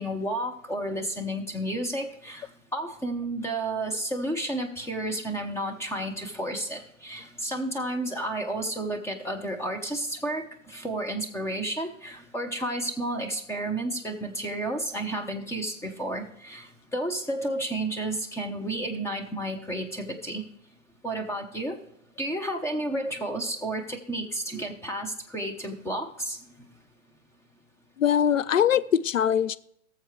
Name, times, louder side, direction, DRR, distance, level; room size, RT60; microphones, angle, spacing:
voice 1, 0.0-20.4 21.0-21.8 22.2-26.4, right 1 dB, 5° left, 3 dB, 1.0 m, -31 dB
voice 2, 28.0-29.6, left 9 dB, 90° left, 16 dB, 0.6 m, -22 dB
18.5 x 7.2 x 3.2 m, 0.73 s
hypercardioid pair, 115°, 38 cm